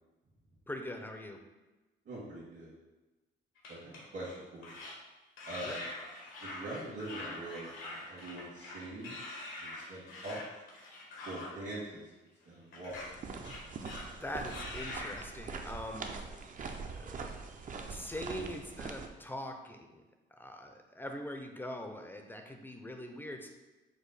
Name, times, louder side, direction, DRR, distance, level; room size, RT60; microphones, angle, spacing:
voice 1, 0.7-1.4 5.6-5.8 13.8-13.9 14.2-16.5 17.0-17.2 17.8-20.0 20.3-23.5, left 1 dB, 10° left, 4 dB, 0.5 m, -42 dB
voice 2, 2.0-2.7 3.7-4.8 5.5-5.8 6.4-9.2 9.6-10.4 11.2-12.0 12.4-12.9 18.3-18.5, right 1 dB, 65° right, -7 dB, 1.5 m, -43 dB
sound 1, 3.6-4.3 4.6-4.9 5.4-11.5 12.7-13.1 13.4-14.2 14.5-15.2, left 2 dB, 80° left, 1.1 m, -44 dB
sound 2, 12.9-19.1, right 4 dB, 40° right, 0.5 m, -43 dB
5.0 x 2.1 x 4.0 m, 1.1 s
cardioid pair, 90°, 20 cm